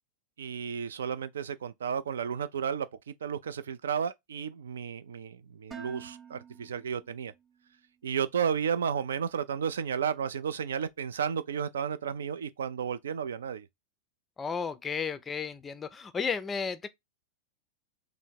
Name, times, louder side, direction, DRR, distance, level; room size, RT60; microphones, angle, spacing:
voice 1, 0.4-7.3 8.0-13.7, right 7 dB, 65° right, 0.4 m, -33 dB
Dishes pots and pans, 5.7-7.8, right 7 dB, 10° right, 0.7 m, -48 dB
voice 2, 14.4-16.9, left 6 dB, 15° left, 0.4 m, -33 dB
3.5 x 2.0 x 4.3 m
figure-of-eight pair, 90°, 0 cm